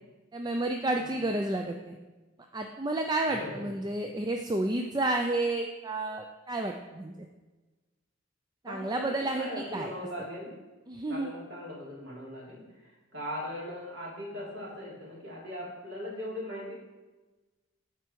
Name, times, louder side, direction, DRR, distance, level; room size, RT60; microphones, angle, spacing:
voice 1, 0.3-2.0 2.5-7.3 8.6-9.9 10.9-11.3, right 2 dB, 20° right, 3 dB, 0.4 m, -31 dB
voice 2, 8.7-10.6 11.1-16.7, left 1 dB, 70° right, -5 dB, 3.2 m, -39 dB
13.0 x 4.6 x 4.6 m, 1.2 s
head